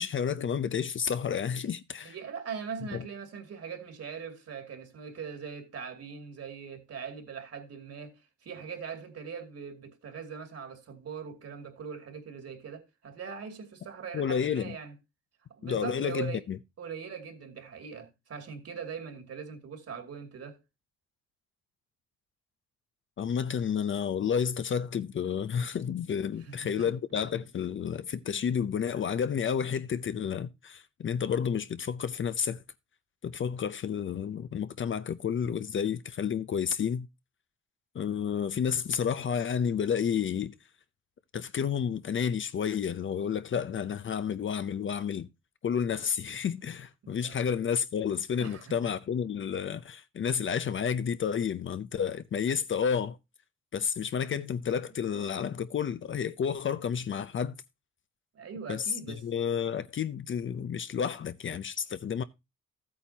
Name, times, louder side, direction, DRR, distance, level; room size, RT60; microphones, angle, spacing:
voice 1, 0.0-2.1 2.9-3.0 14.1-14.8 15.6-16.6 23.2-32.6 33.2-37.1 37.9-40.5 41.3-45.3 45.6-53.2 53.7-57.5 58.7-62.2, left 7 dB, 40° left, 0.6 m, -31 dB
voice 2, 2.0-14.9 15.5-16.5 16.8-20.6 26.4-26.9 47.0-47.5 48.4-48.7 58.3-59.3, right 6 dB, 55° right, 2.5 m, -41 dB
13.5 x 8.6 x 2.8 m
cardioid pair, 90°, 30 cm